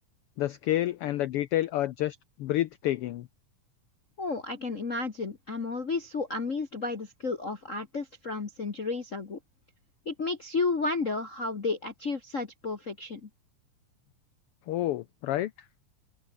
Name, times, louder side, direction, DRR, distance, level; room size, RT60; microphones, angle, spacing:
voice 1, 0.4-3.3 14.7-15.5, left 14 dB, 75° left, 1.3 m, -29 dB
voice 2, 4.2-9.4 10.0-13.3, left 3 dB, 35° left, 1.5 m, -32 dB
open air
omnidirectional pair, 3.4 m